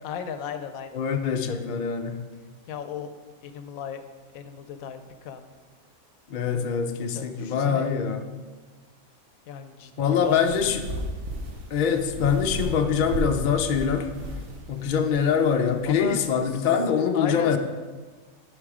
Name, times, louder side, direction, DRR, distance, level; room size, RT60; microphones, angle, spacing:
voice 1, 0.0-1.0 2.7-3.1 3.4-4.0 4.3-5.5 6.5-6.6 7.0-8.1 9.5-10.7 15.9-16.2 16.5-16.7 17.1-17.6, left 8 dB, 75° left, 1.0 m, -36 dB
voice 2, 0.9-2.2 6.3-8.2 10.0-10.8 11.7-14.1 14.7-17.6, left 7 dB, 55° left, 0.5 m, -24 dB
sound 1, 10.1-16.5, right 1 dB, 90° right, 1.6 m, -35 dB
11.0 x 4.1 x 4.9 m
omnidirectional pair, 1.5 m